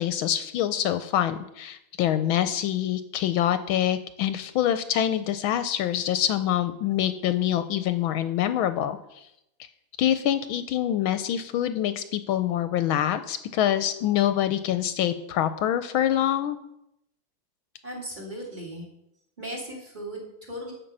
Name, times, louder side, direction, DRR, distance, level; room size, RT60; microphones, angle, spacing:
voice 1, 0.0-9.0 10.0-16.6, left 11 dB, 80° left, 11 dB, 1.4 m, -25 dB
voice 2, 17.8-18.8 19.4-20.7, right 1 dB, 20° right, 0 dB, 2.8 m, -37 dB
11.0 x 7.4 x 5.5 m, 0.81 s
omnidirectional pair, 2.3 m